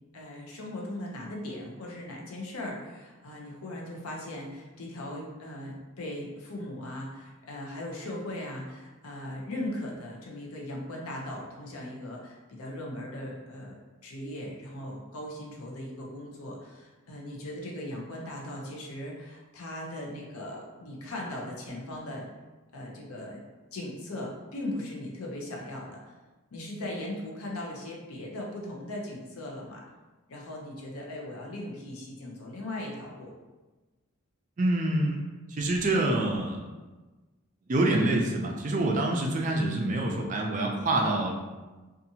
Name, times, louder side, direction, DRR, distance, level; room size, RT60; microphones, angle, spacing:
voice 1, 0.1-22.3 22.7-23.4 23.7-26.1 26.5-29.8 30.3-33.3, left 1 dB, 85° left, -2 dB, 0.6 m, -38 dB
voice 2, 34.6-35.2 35.5-36.7 37.7-41.5, right 2 dB, 35° right, 0 dB, 0.3 m, -26 dB
2.7 x 2.4 x 2.7 m, 1.2 s
head